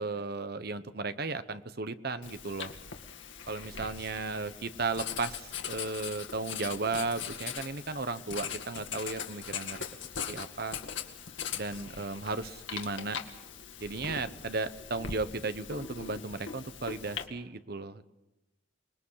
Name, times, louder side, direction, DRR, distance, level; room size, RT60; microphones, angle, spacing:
voice 1, 0.0-2.7 3.5-9.8 10.3-10.8 11.5-13.2 13.8-18.0, right 3 dB, 50° right, 11 dB, 1.1 m, -35 dB
Writing, 2.2-17.2, left 7 dB, 70° left, 2.0 m, -41 dB
27.0 x 21.0 x 5.7 m, 0.97 s
head